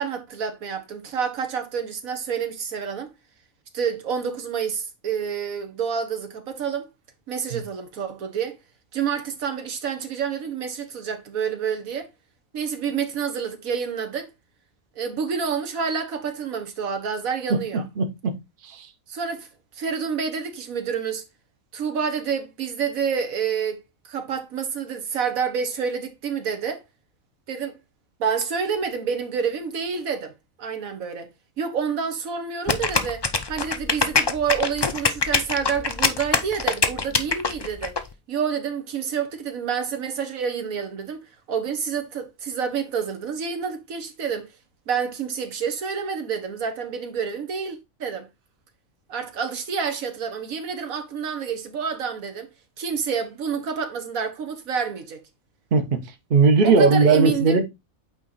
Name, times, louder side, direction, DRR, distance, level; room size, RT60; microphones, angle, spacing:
voice 1, 0.0-3.1 3.7-6.9 7.3-8.6 8.9-12.1 12.5-14.3 14.9-17.8 19.1-19.5 19.7-21.3 21.7-23.8 24.0-26.8 27.5-27.8 28.2-30.3 30.6-31.3 31.6-37.9 38.3-44.5 44.9-48.3 49.1-52.5 52.8-55.2 56.6-57.6, right 6 dB, 80° right, 1.6 m, -28 dB
voice 2, 17.5-18.3 18.6-18.9 55.7-56.0 56.3-57.6, right 4 dB, 45° right, 1.1 m, -19 dB
sound 1, 32.7-38.0, left 4 dB, 40° left, 0.3 m, -23 dB
8.6 x 3.1 x 4.0 m
omnidirectional pair, 1.4 m